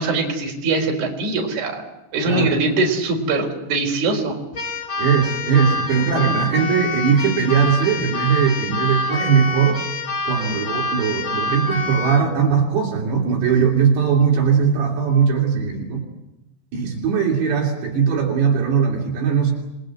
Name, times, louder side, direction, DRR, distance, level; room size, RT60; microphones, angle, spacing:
voice 1, 0.0-4.4, right 3 dB, 40° right, 1 dB, 5.3 m, -22 dB
voice 2, 2.2-2.6 5.0-9.8 10.3-16.0 16.7-19.5, right 6 dB, 65° right, -1 dB, 5.1 m, -19 dB
Keyboard (musical), 4.5-12.3, left 2 dB, 20° left, 2.6 m, -26 dB
28.0 x 22.0 x 7.9 m, 0.93 s
omnidirectional pair, 5.4 m